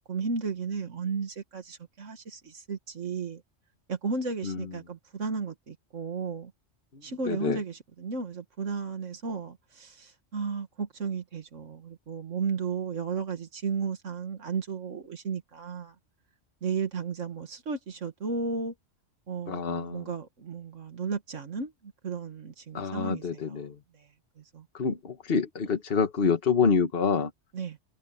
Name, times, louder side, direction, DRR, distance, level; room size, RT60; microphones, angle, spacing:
voice 1, 0.1-3.4 3.9-6.5 7.0-16.0 16.6-18.7 19.3-23.6 23.9-24.1 24.4-24.7 27.5-27.8, right 5 dB, 90° right, 2.1 m, -34 dB
voice 2, 6.9-7.6 19.5-20.1 22.7-23.8 24.7-27.3, left 5 dB, 50° left, 1.6 m, -27 dB
omnidirectional pair, 1.2 m